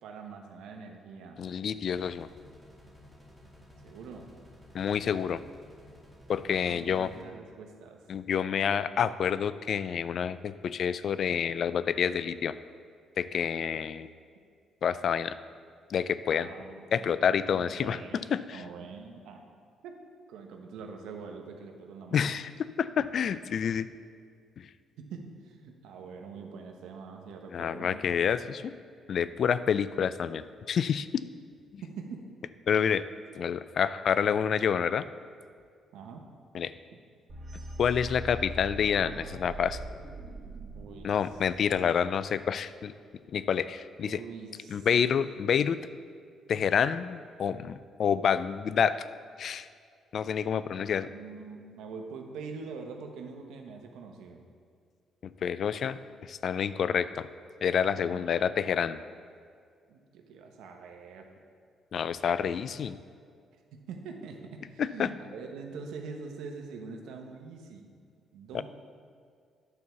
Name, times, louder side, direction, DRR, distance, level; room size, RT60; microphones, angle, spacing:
voice 1, 0.0-1.4 3.8-4.3 6.4-8.0 16.3-17.0 17.5-18.2 18.5-19.5 19.8-20.0 20.3-22.3 25.0-28.0 31.8-32.3 35.9-36.3 40.7-41.4 44.0-44.8 50.5-50.6 51.1-54.4 57.9-58.4 59.9-61.3 63.5-67.9 68.3-68.6, right 5 dB, 85° right, 3 dB, 1.1 m, -44 dB
voice 2, 1.4-2.3 4.7-5.4 6.3-7.1 8.1-12.5 13.2-14.1 14.8-15.4 15.9-16.5 16.9-18.0 18.3-18.6 22.1-22.5 22.8-23.9 24.6-24.7 27.5-28.7 29.1-31.2 31.7-31.8 32.7-33.0 33.4-35.1 36.5-36.7 37.8-39.8 41.0-42.9 43.3-44.2 44.7-45.8 46.5-49.0 49.4-49.7 50.1-51.1 55.2-57.3 57.6-59.0 61.9-63.0 64.8-65.1 68.5-68.6, left 7 dB, 60° left, 15 dB, 0.3 m, -28 dB
sound 1, 1.9-7.2, left 1 dB, 5° left, 2.2 m, -54 dB
sound 2, 37.3-42.2, right 1 dB, 40° right, 1.9 m, -42 dB
9.7 x 4.6 x 6.9 m, 2.1 s
cardioid pair, 90°, 0 cm